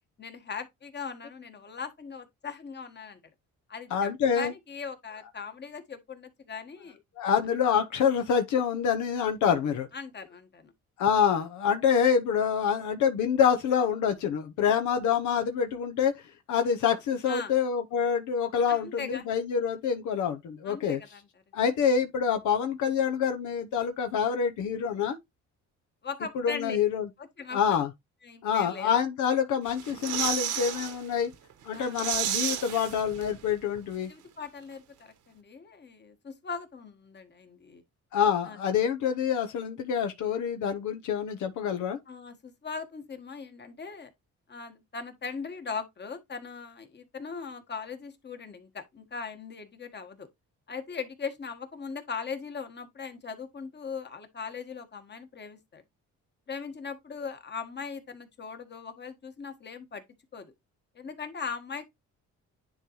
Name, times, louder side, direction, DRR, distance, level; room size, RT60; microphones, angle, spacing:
voice 1, 0.2-3.2 3.7-4.1 4.3-7.0 9.9-10.7 17.3-17.5 18.7-19.2 20.6-21.2 26.0-26.8 27.2-27.8 28.2-29.0 31.7-32.0 34.1-37.8 38.4-38.6 42.1-44.1 44.5-50.3 50.7-55.8 56.5-60.0 60.3-60.5 60.9-61.9, left 5 dB, 35° left, 1.5 m, -39 dB
voice 2, 3.9-4.5 7.2-9.9 11.0-16.2 16.5-21.0 21.5-25.2 26.3-27.1 27.5-27.9 28.4-31.3 31.6-34.1 38.1-42.0, left 7 dB, 80° left, 0.9 m, -26 dB
sound 1, 29.7-31.0 31.3-31.4 31.7-33.5 33.8-33.9, right 9 dB, 80° right, 1.3 m, -32 dB
9.9 x 3.9 x 3.1 m
cardioid pair, 90°, 30 cm